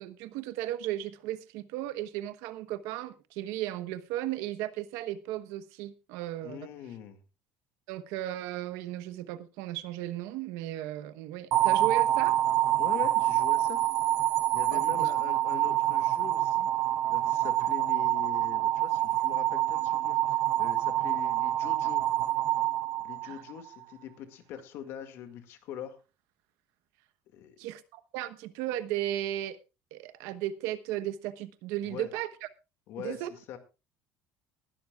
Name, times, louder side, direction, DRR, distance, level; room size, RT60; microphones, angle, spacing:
voice 1, 0.0-6.7 7.9-12.4 14.7-15.1 15.7-15.8 23.2-23.4 27.6-29.6 29.9-32.5 33.0-33.3, right 13 dB, 75° right, 1.1 m, -35 dB
voice 2, 6.4-7.2 12.8-13.8 14.5-16.7 17.1-22.1 23.0-26.0 27.3-27.6 31.9-32.1 32.9-33.6, left 9 dB, 55° left, 2.0 m, -42 dB
sound 1, 11.5-23.7, right 14 dB, 50° right, 0.7 m, -27 dB
20.0 x 12.0 x 2.4 m
cardioid pair, 165°, 5 cm